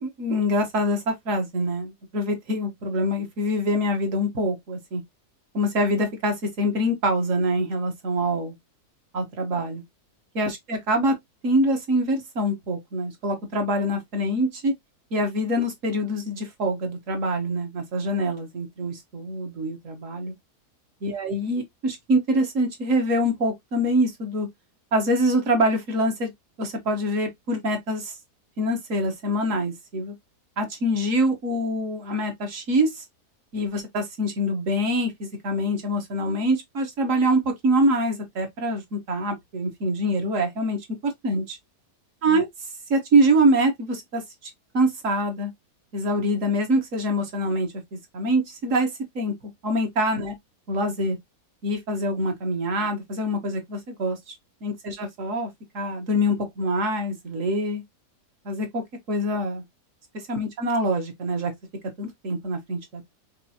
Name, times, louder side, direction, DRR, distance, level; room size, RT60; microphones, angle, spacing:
voice 1, 0.0-5.0 5.5-8.5 9.1-9.8 10.3-11.1 11.4-14.7 15.1-20.3 21.0-24.5 24.9-26.3 26.6-28.1 28.6-30.1 30.6-33.0 33.5-40.8 41.0-41.6 42.2-42.4 42.9-44.2 44.7-45.5 45.9-48.9 49.1-49.3 49.6-50.3 50.7-51.2 51.6-54.2 54.6-55.5 55.7-57.8 58.4-58.8 59.1-59.6 60.3-61.5 62.0-63.1, equal, 50° right, 1.5 m, -25 dB
5.9 x 2.6 x 2.8 m
omnidirectional pair, 1.8 m